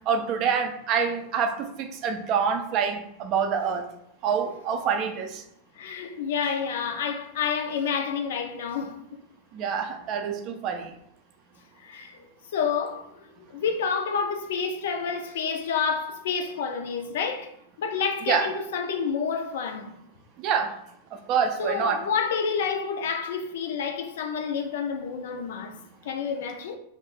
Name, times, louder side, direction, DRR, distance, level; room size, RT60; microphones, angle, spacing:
voice 1, 0.1-3.9 4.2-5.4 9.5-10.9 18.3-18.5 20.4-20.7 21.3-22.0, right 6 dB, 40° right, 0.4 m, -26 dB
voice 2, 5.8-9.0 11.8-12.2 12.5-13.2 13.5-17.5 17.8-20.0 21.6-25.8 26.0-26.8, left 6 dB, 55° left, 0.4 m, -29 dB
2.4 x 2.0 x 3.6 m
figure-of-eight pair, 90°, 0 cm